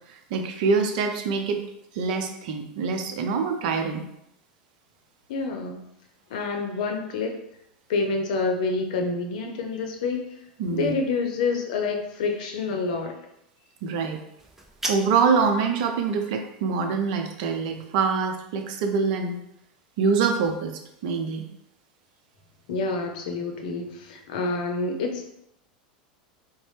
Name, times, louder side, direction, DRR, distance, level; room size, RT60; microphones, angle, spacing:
voice 1, 0.1-1.6 1.9-4.1 10.6-10.9 13.8-14.2 14.9-19.4 20.0-21.4, right 5 dB, 60° right, 5 dB, 0.6 m, -25 dB
voice 2, 5.3-5.8 6.3-7.3 7.9-10.2 10.7-13.1 22.7-25.3, left 4 dB, 70° left, 3 dB, 0.6 m, -27 dB
sound 1, 14.4-15.4, right 1 dB, 5° right, 0.5 m, -34 dB
4.0 x 2.1 x 3.2 m, 0.80 s
hypercardioid pair, 95°, 4 cm